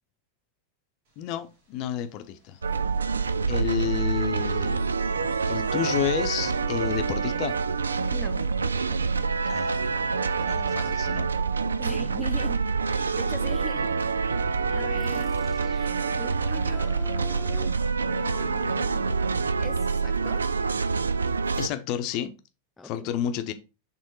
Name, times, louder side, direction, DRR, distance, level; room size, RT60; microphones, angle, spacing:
Thunder, 1.1-19.0, right 1 dB, 50° right, 2.0 m, -53 dB
voice 1, 1.2-2.6 3.5-5.0 5.5-7.5 9.5-9.9 10.4-11.3 21.6-22.3 22.8-23.5, left 10 dB, 40° left, 0.8 m, -30 dB
sound 1, 2.6-21.7, right 4 dB, 75° right, 0.3 m, -26 dB
voice 2, 8.1-8.4 8.9-9.0 11.8-12.6 12.9-14.0 14.7-17.9 18.2-19.3 19.6-20.5 22.8-23.1, left 2 dB, 10° left, 0.4 m, -41 dB
sound 2, 15.0-20.3, right 2 dB, 25° right, 1.5 m, -55 dB
6.5 x 3.5 x 4.6 m
figure-of-eight pair, 90°, 0 cm